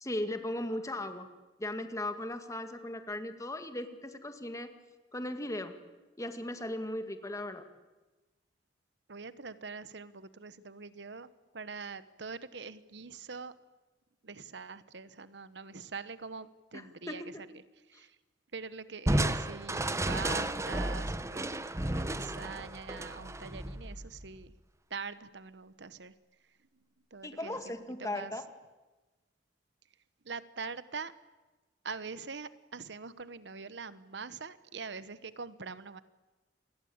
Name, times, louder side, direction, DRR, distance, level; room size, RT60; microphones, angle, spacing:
voice 1, 0.0-1.3 1.6-4.7 5.1-5.7 6.2-7.6 16.7-17.2 27.2-28.5, left 1 dB, 20° left, 8 dB, 2.1 m, -37 dB
voice 2, 9.1-13.5 14.2-17.6 17.9-18.2 18.5-24.5 24.9-26.1 27.1-27.7 28.0-28.3 30.2-31.1 31.8-36.0, right 5 dB, 70° right, 15 dB, 1.0 m, -43 dB
Crushing, 19.1-24.4, right 1 dB, 15° right, 1.0 m, -33 dB
28.0 x 21.0 x 8.8 m, 1.2 s
head